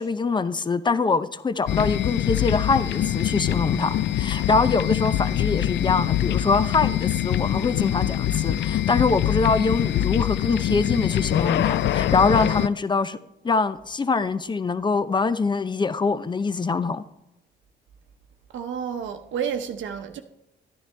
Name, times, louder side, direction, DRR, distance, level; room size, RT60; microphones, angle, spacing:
voice 1, 0.0-13.2 13.4-17.0, left 4 dB, 25° left, 0.6 m, -24 dB
sound 1, 1.7-12.7, left 12 dB, 65° left, 0.4 m, -24 dB
voice 2, 18.5-20.2, right 7 dB, 70° right, 0.9 m, -30 dB
11.5 x 10.5 x 3.3 m
cardioid pair, 90°, 20 cm